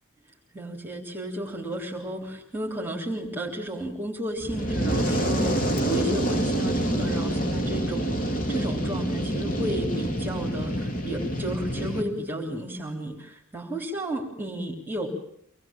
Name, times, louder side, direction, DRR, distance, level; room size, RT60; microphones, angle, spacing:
voice 1, 0.5-15.1, right 1 dB, 10° right, -1 dB, 3.4 m, -33 dB
Fire, 4.4-12.0, right 1 dB, 40° left, 2.9 m, -27 dB
26.0 x 19.5 x 8.9 m, 0.70 s
head